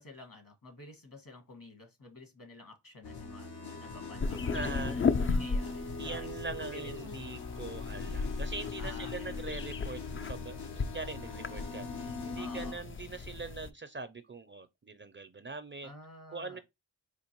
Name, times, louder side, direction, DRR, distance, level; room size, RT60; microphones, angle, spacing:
voice 1, 0.0-6.4 6.7-7.0 8.8-9.6 12.3-12.8 15.8-16.6, left 2 dB, 55° left, 1.5 m, -50 dB
sound 1, 3.0-12.7, left 3 dB, 75° left, 0.9 m, -41 dB
sound 2, 4.2-13.7, left 4 dB, 35° left, 0.4 m, -36 dB
voice 2, 4.5-5.0 6.0-10.0 10.3-15.9 16.3-16.6, right 3 dB, 30° right, 0.5 m, -42 dB
4.4 x 2.5 x 2.9 m
cardioid pair, 40°, 41 cm